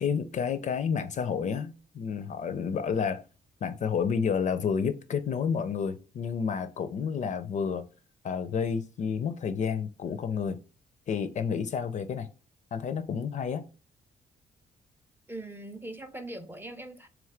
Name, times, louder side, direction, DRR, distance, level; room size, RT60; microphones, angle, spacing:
voice 1, 0.0-3.2 3.6-7.9 8.2-10.6 11.1-12.3 12.7-13.6, left 6 dB, 45° left, 0.4 m, -30 dB
voice 2, 15.3-17.1, right 1 dB, 15° right, 0.4 m, -41 dB
3.7 x 3.0 x 3.2 m
cardioid pair, 135°, 17 cm